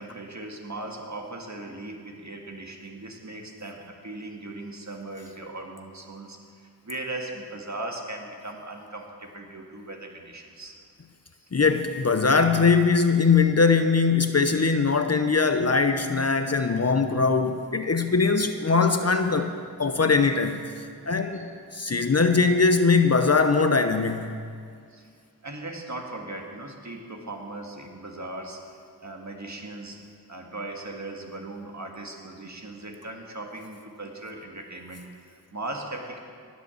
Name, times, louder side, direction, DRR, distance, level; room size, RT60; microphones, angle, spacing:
voice 1, 0.0-10.8 11.3-11.5 21.2-21.6 24.9-25.1 25.4-28.7 29.0-36.2, right 2 dB, 45° right, 2 dB, 1.9 m, -38 dB
voice 2, 11.5-19.5 19.8-20.6 21.1-21.5 21.7-24.3, left 4 dB, 40° left, 8 dB, 0.8 m, -21 dB
19.0 x 6.3 x 7.1 m, 2.2 s
cardioid pair, 50°, 41 cm